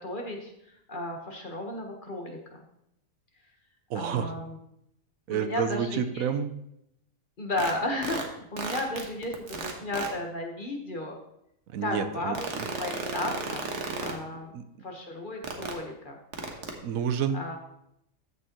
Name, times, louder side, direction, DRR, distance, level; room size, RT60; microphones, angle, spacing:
voice 1, 0.0-2.6 3.9-4.6 5.3-6.3 7.4-11.2 11.8-12.5 12.8-13.7 14.0-14.5 14.8-16.1 17.3-17.6, left 1 dB, 40° left, 2 dB, 1.3 m, -34 dB
voice 2, 3.9-4.3 5.3-6.5 11.7-12.7 14.5-14.6 16.6-17.6, right 7 dB, 75° right, 11 dB, 1.1 m, -30 dB
sound 1, 7.6-7.7 8.0-8.2 8.6-10.1 12.4-14.1 15.4-15.7 16.3-16.8, right 5 dB, 55° right, 1.4 m, -32 dB
14.0 x 6.3 x 3.0 m, 0.78 s
omnidirectional pair, 1.5 m